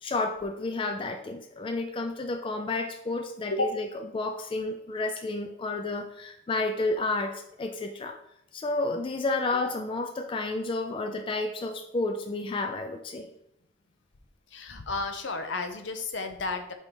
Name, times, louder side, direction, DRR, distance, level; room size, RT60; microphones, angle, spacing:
voice 1, 0.0-3.9 4.1-8.2 8.5-13.3, left 2 dB, 25° left, 5 dB, 0.3 m, -31 dB
voice 2, 14.5-16.7, left 3 dB, 65° left, 7 dB, 0.7 m, -32 dB
4.6 x 4.2 x 5.2 m, 0.81 s
head